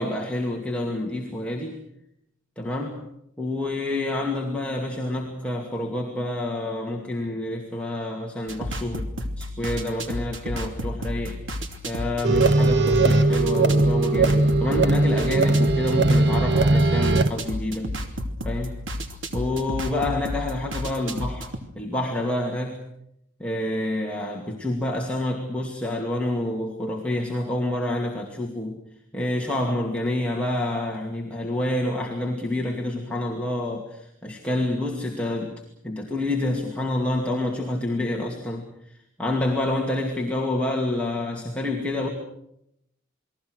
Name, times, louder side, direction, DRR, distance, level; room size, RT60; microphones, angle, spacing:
voice 1, 0.0-1.8 2.6-3.1 3.4-9.1 9.4-11.5 11.8-18.0 18.4-18.8 19.3-21.5 21.8-22.8 23.4-28.8 29.1-35.5 35.8-38.7 39.2-42.1, left 1 dB, 5° left, -2 dB, 2.4 m, -28 dB
sound 1, 8.5-21.6, equal, 80° right, 2.8 m, -32 dB
sound 2, 12.2-17.3, right 2 dB, 60° right, 1.3 m, -19 dB
29.0 x 21.0 x 6.4 m, 0.77 s
head